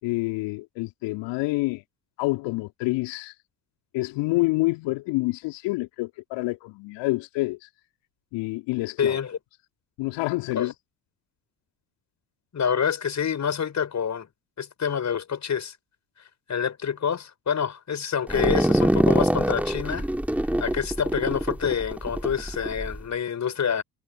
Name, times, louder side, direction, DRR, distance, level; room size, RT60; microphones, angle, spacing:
voice 1, 0.0-1.8 2.2-3.3 3.9-7.7 8.3-9.2 10.0-10.7, left 22 dB, 65° left, 4.1 m, -27 dB
voice 2, 9.0-9.4 10.5-10.7 12.5-14.3 14.6-15.8 16.5-20.1 20.6-23.8, left 7 dB, 35° left, 6.1 m, -27 dB
sound 1, 18.3-23.0, right 1 dB, 5° right, 2.8 m, -24 dB
hypercardioid pair, 60°, 47 cm